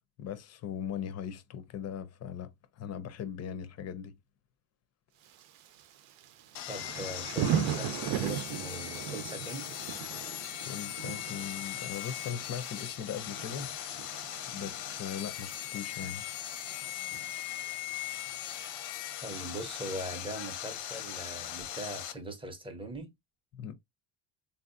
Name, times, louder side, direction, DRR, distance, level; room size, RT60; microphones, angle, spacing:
voice 1, 0.2-4.1 10.6-13.7 14.5-16.2 23.5-23.7, left 8 dB, 35° left, 0.5 m, -39 dB
Thunder / Rain, 5.2-22.1, right 9 dB, 90° right, 0.7 m, -40 dB
Sawing, 6.5-22.1, left 12 dB, 85° left, 0.9 m, -39 dB
voice 2, 6.7-9.8 19.2-23.1, right 1 dB, 10° right, 0.6 m, -41 dB
3.6 x 2.7 x 2.4 m
cardioid pair, 155°, 45 cm